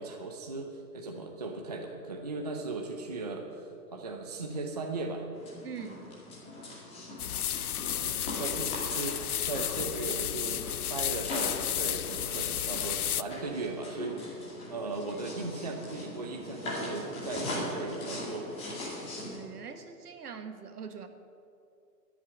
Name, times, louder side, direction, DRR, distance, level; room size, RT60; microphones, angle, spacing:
voice 1, 0.0-5.2 8.0-9.2 9.4-14.3 14.7-18.5, right 3 dB, 25° right, 2 dB, 0.6 m, -37 dB
sound 1, 5.3-19.4, left 1 dB, 10° left, 2.3 m, -41 dB
voice 2, 5.6-6.0 19.2-21.1, right 7 dB, 65° right, 7 dB, 1.6 m, -43 dB
sound 2, 7.2-13.2, left 11 dB, 60° left, 0.6 m, -32 dB
13.0 x 7.6 x 9.6 m, 2.6 s
hypercardioid pair, 165°, 50 cm